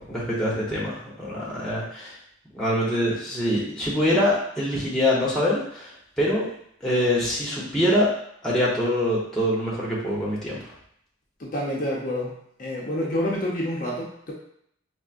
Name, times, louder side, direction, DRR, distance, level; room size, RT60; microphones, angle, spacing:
voice 1, 0.0-2.1 2.5-5.9 6.2-6.5 6.8-8.1 8.4-10.6, left 1 dB, 5° left, -7 dB, 0.8 m, -24 dB
voice 2, 11.4-12.3 12.6-14.3, left 1 dB, 45° left, -4 dB, 0.6 m, -28 dB
4.3 x 2.0 x 2.4 m, 0.70 s
head